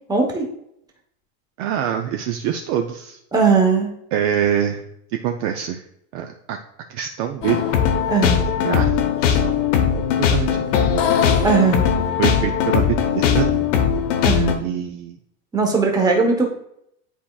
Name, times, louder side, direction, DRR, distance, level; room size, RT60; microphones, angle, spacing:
voice 1, 0.1-0.5 3.3-3.9 8.1-8.4 11.4-11.9 14.2-14.6 15.5-16.5, right 4 dB, 10° right, 1 dB, 0.9 m, -18 dB
voice 2, 1.6-3.2 4.1-4.8 5.2-5.8 6.1-6.6 6.9-7.7 8.6-9.7 10.3-11.0 12.2-13.6 14.5-15.2, right 9 dB, 45° right, 4 dB, 0.4 m, -25 dB
sound 1, 7.4-14.5, left 7 dB, 80° left, 1.1 m, -19 dB
10.0 x 4.2 x 2.3 m, 0.75 s
supercardioid pair, 150°, 38 cm